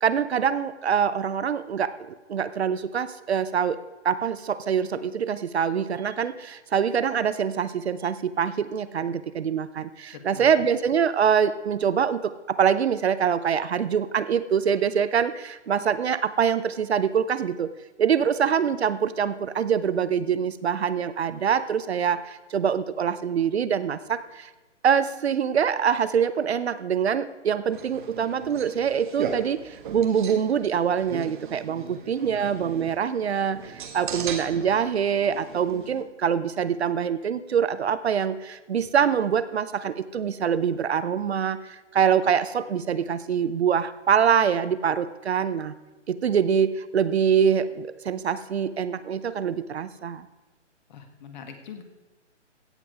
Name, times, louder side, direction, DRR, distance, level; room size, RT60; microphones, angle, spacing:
voice 1, 0.0-3.8 4.0-17.7 18.0-24.5 24.8-45.8 46.1-50.2, right 7 dB, 60° right, 14 dB, 0.7 m, -24 dB
voice 2, 10.1-10.5 32.2-32.5 50.9-51.8, left 7 dB, 40° left, 6 dB, 1.6 m, -43 dB
sound 1, 27.7-36.0, right 6 dB, 40° right, 1.5 m, -38 dB
16.5 x 7.6 x 4.9 m, 1.2 s
figure-of-eight pair, 140°, 36 cm